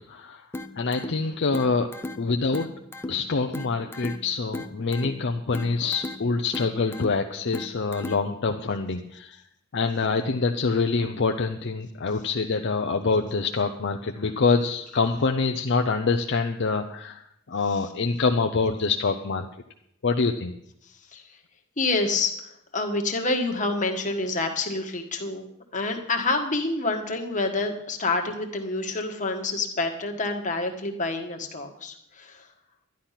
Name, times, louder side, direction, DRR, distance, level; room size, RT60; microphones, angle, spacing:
voice 1, 0.1-0.4 0.8-1.9 2.2-2.7 3.1-9.4 9.7-17.2 17.5-19.5 20.0-20.5, left 4 dB, 55° left, 4 dB, 0.6 m, -25 dB
sound 1, 0.5-8.5, left 2 dB, 10° left, 0.7 m, -38 dB
voice 2, 21.8-22.3 22.7-25.5 25.7-32.5, left 3 dB, 35° left, 3 dB, 1.5 m, -27 dB
11.5 x 10.5 x 5.8 m, 0.76 s
head